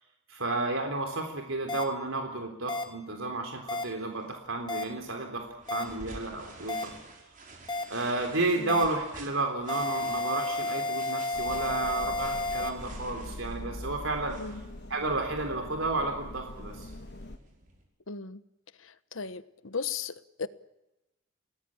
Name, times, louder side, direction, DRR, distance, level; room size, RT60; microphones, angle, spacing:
voice 1, 0.3-7.0 7.9-14.4 14.9-16.9, right 2 dB, 80° right, 3.6 m, -32 dB
sound 1, 1.7-1.8 2.7-2.8 3.7-3.8 4.7-4.8 5.7-5.8 6.7-6.8 7.7-7.8 8.7-8.8 9.7-12.7, left 2 dB, 20° left, 2.7 m, -31 dB
sound 2, 4.2-17.8, right 3 dB, 40° right, 5.8 m, -51 dB
voice 2, 8.6-8.9 14.3-14.6 18.1-18.4 18.8-20.5, left 5 dB, 75° left, 1.1 m, -37 dB
sound 3, 11.3-17.4, left 1 dB, 55° left, 1.6 m, -43 dB
29.5 x 19.0 x 8.8 m
head